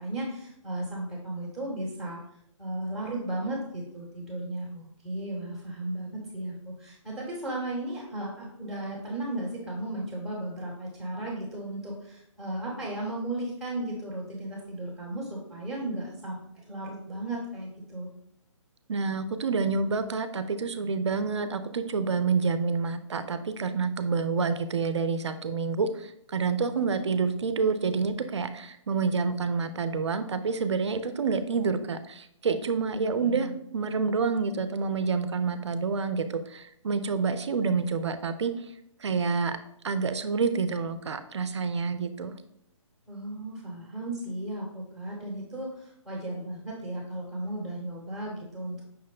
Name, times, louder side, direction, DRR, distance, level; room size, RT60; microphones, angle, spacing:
voice 1, 0.0-2.2 2.6-18.1 32.9-33.6 43.1-48.8, right 1 dB, ahead, -7 dB, 0.9 m, -35 dB
voice 2, 18.9-38.7 39.0-39.6 39.8-42.4, right 5 dB, 60° right, 10 dB, 0.4 m, -28 dB
5.6 x 2.1 x 3.7 m, 0.76 s
figure-of-eight pair, 135°, 17 cm